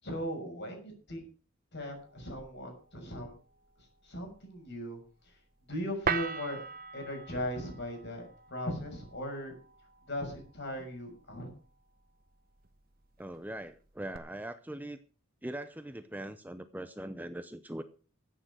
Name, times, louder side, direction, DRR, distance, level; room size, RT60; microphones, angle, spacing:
voice 1, 0.0-1.2 1.7-3.3 3.8-5.0 5.2-5.4 5.7-6.6 6.9-9.5 10.1-11.5, equal, 55° left, 3 dB, 6.4 m, -38 dB
sound 1, 1.9-14.2, right 6 dB, 45° right, 1.1 m, -43 dB
voice 2, 13.2-15.0 15.4-17.8, right 1 dB, 10° right, 10 dB, 0.7 m, -41 dB
14.0 x 8.9 x 6.4 m, 0.38 s
head